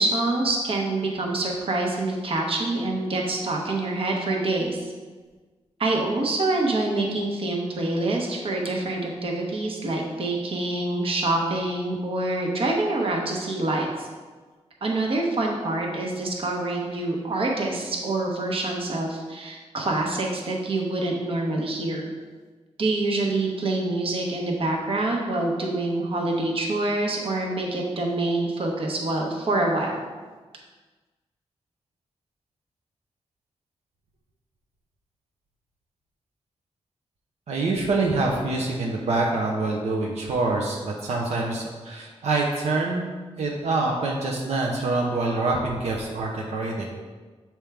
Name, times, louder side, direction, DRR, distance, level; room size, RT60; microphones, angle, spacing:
voice 1, 0.0-4.9 5.8-14.1 14.8-22.1 22.8-30.0, right 2 dB, 60° right, 0 dB, 1.0 m, -26 dB
voice 2, 37.5-43.1 43.4-46.9, right 3 dB, 90° right, -1 dB, 0.8 m, -25 dB
7.1 x 4.5 x 3.5 m, 1.4 s
wide cardioid pair, 140°, 11 cm